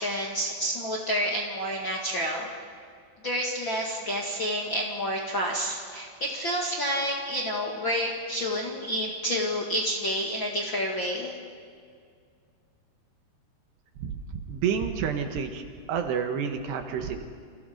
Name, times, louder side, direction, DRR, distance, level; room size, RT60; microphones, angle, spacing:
voice 1, 0.0-2.5 3.2-11.3, equal, 40° left, -2 dB, 1.9 m, -29 dB
voice 2, 14.0-15.6 15.9-17.3, right 7 dB, 70° right, 5 dB, 3.4 m, -29 dB
29.0 x 27.5 x 5.2 m, 2.1 s
omnidirectional pair, 5.1 m